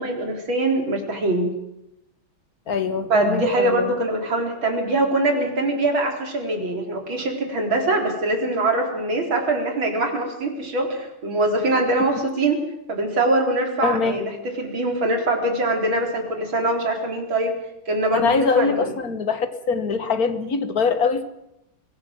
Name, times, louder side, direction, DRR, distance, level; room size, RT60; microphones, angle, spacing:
voice 1, 0.0-1.5 3.1-12.6 12.9-14.3 14.6-17.5 17.9-18.9, right 2 dB, 70° right, 2 dB, 4.7 m, -23 dB
voice 2, 2.7-3.9 12.0-12.1 13.8-14.2 18.1-21.2, left 5 dB, 50° left, 10 dB, 1.8 m, -23 dB
24.0 x 17.0 x 7.6 m, 0.85 s
omnidirectional pair, 2.3 m